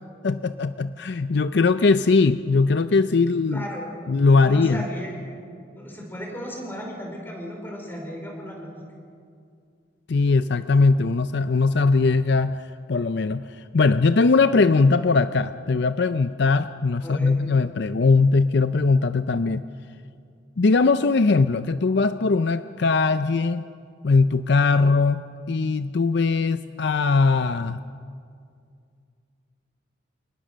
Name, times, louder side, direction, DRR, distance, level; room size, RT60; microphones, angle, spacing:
voice 1, 0.2-3.6 4.1-4.8 10.1-19.7 20.6-23.7 24.0-27.8, left 4 dB, 60° left, 12 dB, 0.5 m, -20 dB
voice 2, 3.5-3.9 4.4-5.4 5.7-8.8 17.0-17.3, equal, 10° left, 0 dB, 4.9 m, -35 dB
29.0 x 19.5 x 6.4 m, 2.3 s
head